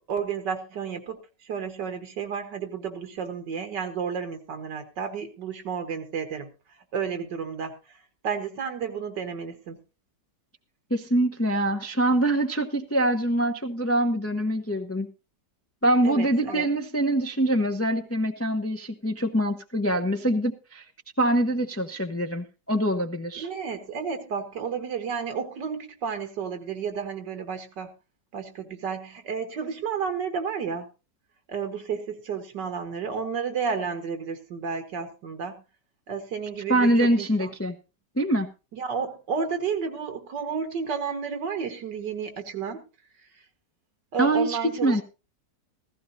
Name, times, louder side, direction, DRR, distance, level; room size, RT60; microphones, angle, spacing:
voice 1, 0.0-6.5 6.9-7.7 8.2-9.8 16.0-16.6 23.4-27.9 28.3-30.9 31.5-35.6 36.1-37.5 38.7-42.8 44.1-45.0, right 6 dB, 85° right, 8 dB, 2.2 m, -32 dB
voice 2, 10.9-15.1 15.8-20.8 21.2-23.5 36.7-37.8 38.2-38.5 44.2-45.0, right 1 dB, 20° left, 6 dB, 0.3 m, -24 dB
15.5 x 15.5 x 2.7 m, 0.30 s
omnidirectional pair, 1.8 m